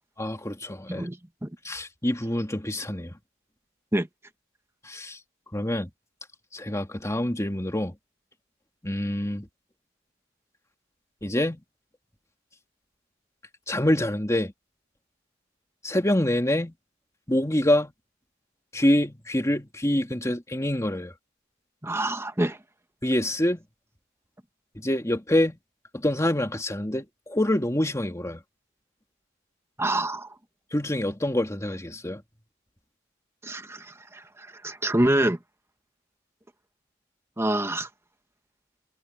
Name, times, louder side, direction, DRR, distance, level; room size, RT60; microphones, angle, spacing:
voice 1, 0.2-1.1 1.6-3.2 4.8-5.2 5.5-5.9 6.5-7.9 8.8-9.5 11.2-11.6 13.7-14.5 15.8-16.7 17.3-17.9 18.7-21.1 23.0-23.6 24.8-25.6 25.9-28.4 30.7-32.2, left 1 dB, 15° left, 2.6 m, -26 dB
voice 2, 21.8-22.6 29.8-30.3 33.4-35.4 37.4-37.9, right 1 dB, 15° right, 1.3 m, -26 dB
head